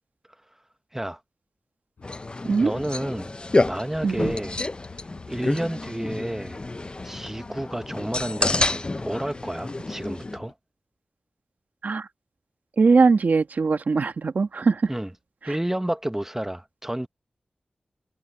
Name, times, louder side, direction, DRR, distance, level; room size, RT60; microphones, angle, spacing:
sound 1, 2.0-10.5, left 5 dB, 80° left, 5.8 m, -48 dB
sound 2, 2.0-10.4, left 2 dB, 35° left, 0.6 m, -29 dB
voice 1, 2.6-3.3 3.6-4.6 4.9-6.7 7.0-10.5 14.9-15.1 15.4-17.1, right 1 dB, 15° right, 1.0 m, -30 dB
voice 2, 4.0-4.3 11.8-12.1 12.8-14.9 15.4-15.6, right 4 dB, 70° right, 1.5 m, -21 dB
cardioid pair, 55°, 3 cm